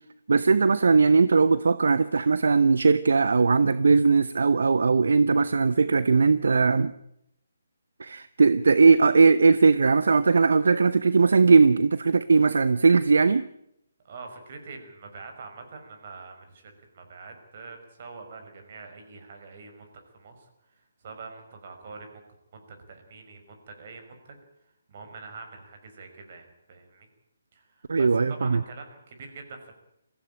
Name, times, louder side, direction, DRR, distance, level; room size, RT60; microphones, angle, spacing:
voice 1, 0.3-6.9 8.0-13.5 27.9-28.6, right 4 dB, 65° right, 16 dB, 0.8 m, -19 dB
voice 2, 14.0-22.2 22.7-24.4 24.6-27.1 27.5-29.7, right 4 dB, 45° right, 5 dB, 5.6 m, -45 dB
22.5 x 15.5 x 9.0 m, 0.79 s
figure-of-eight pair, 145°, 0 cm